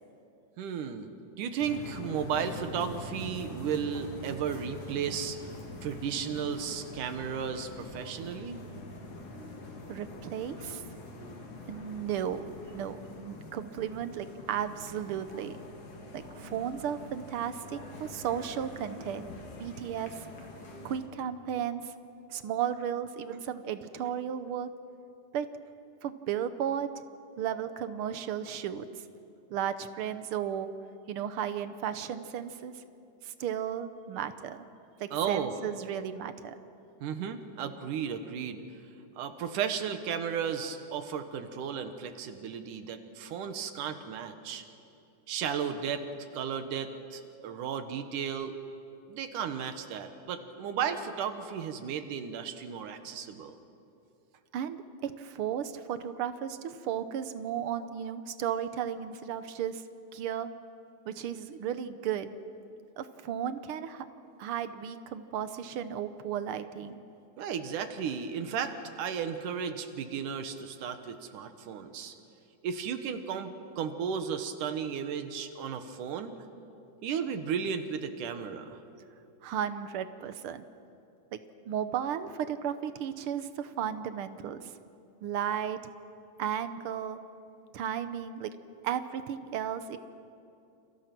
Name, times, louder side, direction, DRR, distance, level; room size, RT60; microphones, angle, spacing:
voice 1, 0.6-1.1 1.4-5.5 5.8-8.6 35.1-35.5 37.0-38.6 39.2-44.6 45.3-46.0 46.3-48.6 49.1-53.6 67.4-72.1 72.6-76.4 77.0-78.8, right 7 dB, 85° right, 8 dB, 2.8 m, -34 dB
sound 1, 1.6-21.0, left 1 dB, 80° left, 4.4 m, -44 dB
voice 2, 9.9-10.8 11.7-12.4 12.7-15.6 16.1-19.3 19.6-20.3 20.8-21.9 22.3-24.7 25.3-25.5 26.0-26.9 27.4-28.9 29.5-30.7 31.1-32.8 33.2-34.7 35.0-36.5 54.5-59.8 60.1-60.5 61.1-62.4 63.0-64.1 64.4-67.0 79.4-80.6 81.3-81.4 81.7-84.7 85.2-85.9 86.4-87.2 87.7-88.5 88.8-90.0, right 9 dB, 70° right, 11 dB, 1.3 m, -34 dB
29.5 x 29.0 x 6.0 m, 2.7 s
omnidirectional pair, 3.5 m